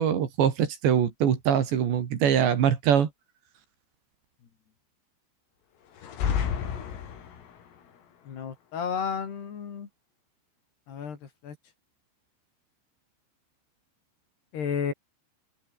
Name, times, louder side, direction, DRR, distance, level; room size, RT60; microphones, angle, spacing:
voice 1, 0.0-3.1, right 8 dB, 65° right, 4.8 m, -23 dB
sound 1, 6.0-7.6, left 8 dB, 85° left, 6.8 m, -30 dB
voice 2, 8.2-9.9 10.9-11.6 14.5-14.9, left 7 dB, 55° left, 5.3 m, -32 dB
omnidirectional pair, 5.8 m